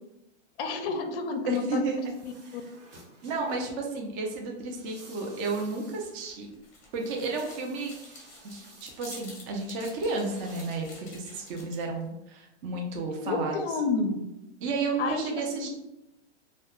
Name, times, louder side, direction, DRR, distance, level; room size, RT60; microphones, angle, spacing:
voice 1, 0.6-2.1 2.5-2.6 13.2-14.2 15.0-15.7, left 4 dB, 55° left, 6 dB, 0.5 m, -30 dB
sound 1, 1.3-12.1, right 2 dB, 85° right, 0.9 m, -54 dB
voice 2, 1.5-2.0 2.4-2.6 3.2-6.5 6.9-7.9 8.4-13.6 14.6-15.7, right 3 dB, 30° right, 1 dB, 0.4 m, -32 dB
sound 2, 6.3-12.0, left 3 dB, 20° left, 0.7 m, -49 dB
2.2 x 2.1 x 2.9 m, 0.90 s
hypercardioid pair, 140°, 35 cm